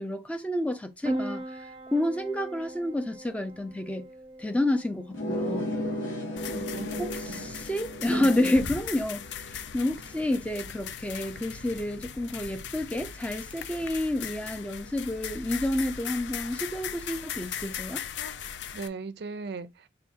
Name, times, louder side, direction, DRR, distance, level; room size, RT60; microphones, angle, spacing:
voice 1, 0.0-1.6 1.9-4.1 4.4-5.8 6.5-6.7 7.0-18.0, left 1 dB, 5° left, 0.4 m, -29 dB
Piano, 1.0-16.0, right 1 dB, 25° right, 0.7 m, -43 dB
sound 1, 5.1-10.4, equal, 85° left, 1.4 m, -35 dB
sound 2, 6.4-18.9, left 8 dB, 65° left, 0.4 m, -39 dB
voice 2, 6.7-7.5 8.1-8.5 18.7-19.9, right 4 dB, 55° right, 0.4 m, -38 dB
4.5 x 2.6 x 3.5 m
head